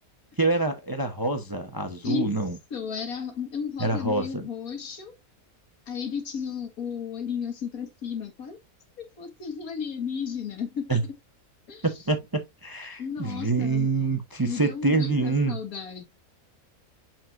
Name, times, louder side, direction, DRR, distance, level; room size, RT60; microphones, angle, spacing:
voice 1, 0.4-2.6 3.8-4.5 10.9-11.0 11.8-15.6, right 3 dB, 20° right, 0.7 m, -26 dB
voice 2, 2.7-5.1 5.9-8.6 9.0-11.0 11.7-11.9 13.0-13.9 14.4-16.0, left 7 dB, 75° left, 2.1 m, -33 dB
7.4 x 5.8 x 2.5 m
omnidirectional pair, 1.5 m